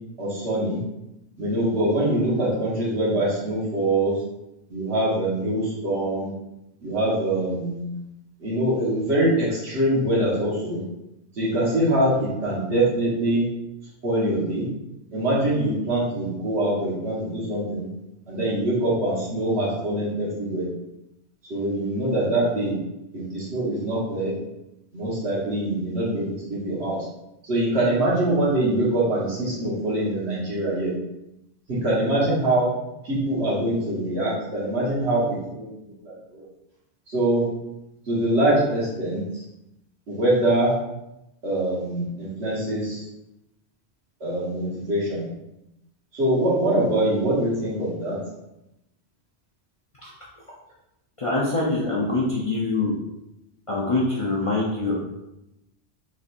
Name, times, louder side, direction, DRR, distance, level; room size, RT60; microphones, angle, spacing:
voice 1, 0.2-0.8 1.4-4.2 4.7-6.3 6.8-7.9 8.4-10.8 11.4-13.5 14.0-14.7 15.1-17.9 18.3-20.6 21.5-22.8 23.1-24.3 24.9-27.0 27.4-30.9 31.7-32.7 33.0-36.5 37.1-37.5 38.1-39.4 40.1-40.7 41.4-43.0 44.2-45.2 46.1-48.2, right 1 dB, 70° right, -7 dB, 1.6 m, -24 dB
voice 2, 51.2-52.9 53.7-55.0, left 2 dB, 40° left, -6 dB, 0.5 m, -24 dB
3.9 x 3.1 x 2.5 m, 0.89 s
omnidirectional pair, 1.2 m